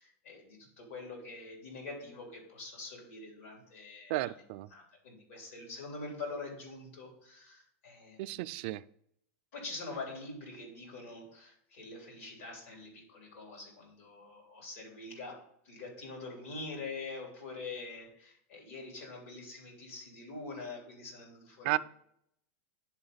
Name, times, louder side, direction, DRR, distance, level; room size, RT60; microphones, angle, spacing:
voice 1, 0.0-4.3 4.7-8.5 9.5-21.8, left 3 dB, 80° left, 3.5 m, -45 dB
voice 2, 4.1-4.7 8.2-8.8 21.6-21.8, right 18 dB, 50° right, 0.3 m, -33 dB
10.5 x 4.1 x 4.0 m
supercardioid pair, 165°, 7 cm